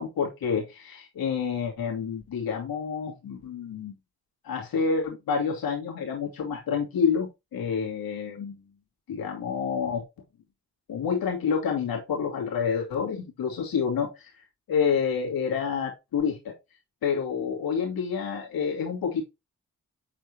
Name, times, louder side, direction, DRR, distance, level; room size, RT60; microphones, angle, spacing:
voice 1, 0.0-3.9 4.4-8.6 9.1-10.0 10.9-14.3 14.7-16.5 17.0-19.2, left 6 dB, 85° left, -1 dB, 2.5 m, -28 dB
8.3 x 4.6 x 2.8 m, 0.23 s
supercardioid pair, 40°, 34 cm